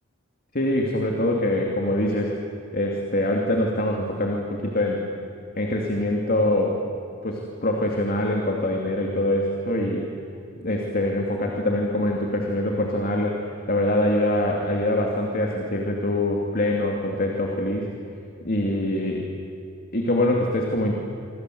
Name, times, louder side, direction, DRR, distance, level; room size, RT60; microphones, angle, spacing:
voice 1, 0.5-2.3 2.7-5.0 5.6-6.8 7.2-10.1 10.6-13.4 13.7-17.9 18.4-19.3 19.9-21.0, left 1 dB, 45° left, 1 dB, 2.7 m, -24 dB
26.5 x 26.0 x 7.9 m, 2.7 s
head